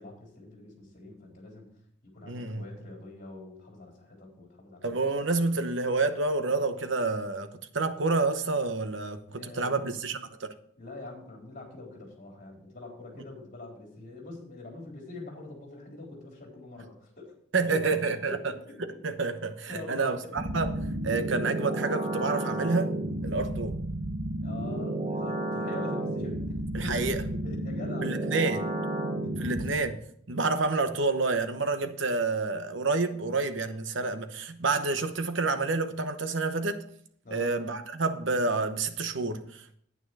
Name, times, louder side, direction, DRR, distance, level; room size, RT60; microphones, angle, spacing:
voice 1, 0.0-1.7 2.0-4.9 9.3-9.9 10.8-17.3 17.7-18.8 19.7-20.4 24.4-28.3 29.0-29.7 37.2-37.6, left 2 dB, 45° left, 3.9 m, -44 dB
voice 2, 2.2-2.7 4.8-10.5 17.5-18.4 19.0-20.7 21.0-22.9 23.2-23.8 26.7-27.2 28.0-28.6 29.4-36.8 37.3-39.7, right 3 dB, 70° right, 1.0 m, -29 dB
sound 1, 20.4-29.7, right 1 dB, 35° right, 1.3 m, -32 dB
9.4 x 9.1 x 4.7 m
head